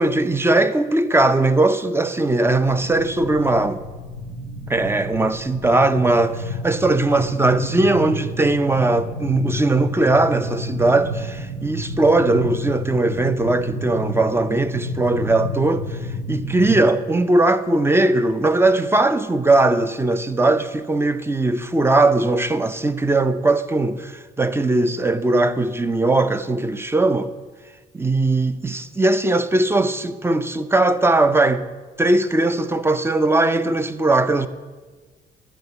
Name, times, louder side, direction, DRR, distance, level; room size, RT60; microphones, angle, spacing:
voice 1, 0.0-3.8 4.7-16.0 16.3-27.3 27.9-31.6 32.0-34.5, right 2 dB, 10° right, 0.6 m, -19 dB
sound 1, 2.7-16.8, equal, 80° right, 1.4 m, -30 dB
11.5 x 5.0 x 8.0 m
cardioid pair, 90°, 20 cm